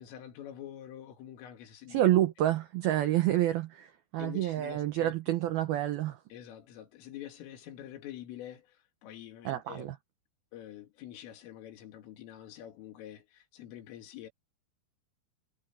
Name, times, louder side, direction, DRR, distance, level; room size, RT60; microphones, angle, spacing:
voice 1, 0.0-2.0 4.2-5.1 6.3-9.9 10.5-14.3, left 11 dB, 80° left, 5.0 m, -46 dB
voice 2, 1.9-6.2 9.5-10.0, right 14 dB, 90° right, 2.1 m, -28 dB
omnidirectional pair, 5.8 m